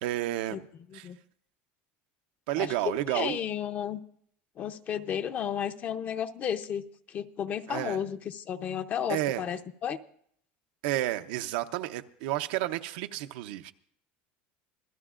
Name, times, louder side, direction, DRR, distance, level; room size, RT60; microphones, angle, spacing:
voice 1, 0.0-0.6 0.9-1.1 2.5-3.4 7.7-8.0 9.1-9.4 10.8-13.7, right 15 dB, 80° right, 8 dB, 0.7 m, -31 dB
voice 2, 3.1-4.0 4.6-6.8 7.1-10.0, left 8 dB, 35° left, 9 dB, 0.7 m, -33 dB
26.0 x 16.5 x 2.5 m, 0.65 s
cardioid pair, 155°, 5 cm